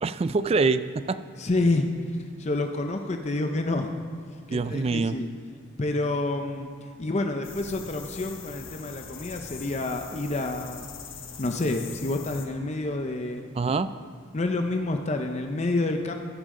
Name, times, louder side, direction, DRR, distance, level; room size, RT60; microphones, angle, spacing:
voice 1, 0.0-1.2 4.5-5.2 13.5-13.9, right 4 dB, 30° right, 13 dB, 0.3 m, -25 dB
voice 2, 1.4-3.9 4.5-5.3 5.8-10.9 11.4-13.4 14.3-16.1, left 2 dB, 35° left, 5 dB, 0.6 m, -28 dB
sound 1, 7.4-12.5, left 6 dB, 80° left, 1.1 m, -42 dB
14.0 x 10.0 x 3.7 m, 2.3 s
head